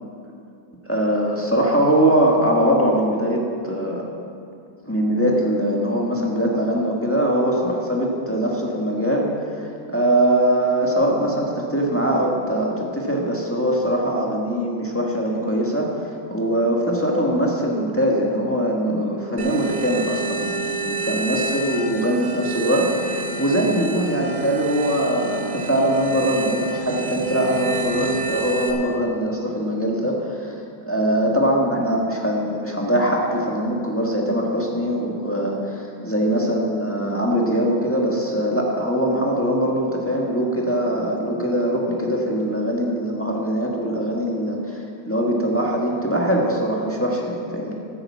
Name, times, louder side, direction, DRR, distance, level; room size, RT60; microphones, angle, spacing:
voice 1, 0.9-4.1 4.8-9.6 9.9-30.5 30.9-47.7, right 1 dB, 10° left, -2 dB, 1.2 m, -22 dB
sound 1, 19.4-28.7, right 4 dB, 65° right, 1.8 m, -29 dB
11.5 x 7.8 x 7.2 m, 2.5 s
omnidirectional pair, 2.1 m